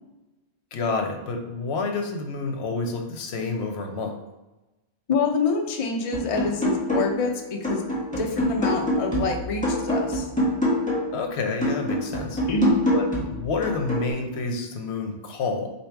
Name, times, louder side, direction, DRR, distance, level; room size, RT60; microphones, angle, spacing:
voice 1, 0.7-4.2 11.1-12.4 12.9-15.7, left 4 dB, 85° left, 4 dB, 0.9 m, -29 dB
voice 2, 5.1-7.8 8.2-10.3 12.5-12.8, left 4 dB, 40° left, 2 dB, 0.5 m, -26 dB
sound 1, 6.1-7.3 7.6-11.2 11.6-14.1, equal, 5° left, 1.2 m, -25 dB
4.0 x 2.7 x 4.5 m, 1.0 s
omnidirectional pair, 1.1 m